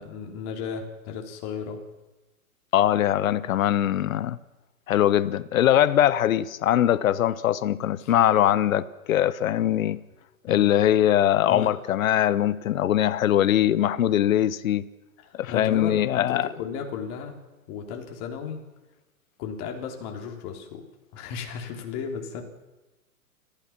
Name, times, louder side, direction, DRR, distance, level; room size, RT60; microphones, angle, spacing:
voice 1, 0.0-1.8 8.0-8.1 10.5-10.7 11.5-11.7 15.2-17.3 17.7-18.6 19.4-20.8 21.1-22.4, left 6 dB, 35° left, 3.6 m, -34 dB
voice 2, 2.7-4.4 4.9-10.0 10.5-14.8 15.4-16.5, left 11 dB, 65° left, 1.0 m, -22 dB
29.0 x 15.0 x 6.0 m
hypercardioid pair, 125°, 44 cm